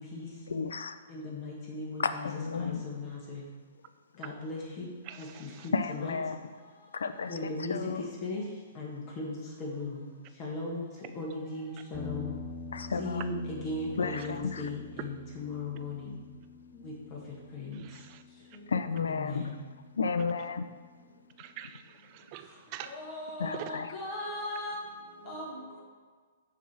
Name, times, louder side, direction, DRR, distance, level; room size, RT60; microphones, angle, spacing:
voice 1, 0.5-1.0 2.0-2.8 5.7-6.4 6.9-8.0 12.7-13.2 14.0-14.6 18.7-19.6 20.0-20.7 23.4-23.9, left 5 dB, 85° left, 0.5 m, -32 dB
voice 2, 1.1-3.4 4.2-4.9 5.2-6.1 7.3-8.4 8.7-10.1 10.4-12.3 13.0-16.2 16.8-16.9 17.5-17.8 19.0-19.5 22.8-24.8 25.2-25.8, left 2 dB, 35° left, 1.7 m, -37 dB
voice 3, 5.0-5.7 14.1-14.3 17.7-18.2 18.5-18.6 21.4-23.9, right 11 dB, 40° right, 0.5 m, -46 dB
sound 1, 11.9-20.3, left 2 dB, 5° left, 0.8 m, -46 dB
6.8 x 3.3 x 6.0 m
hypercardioid pair, 130°, 0 cm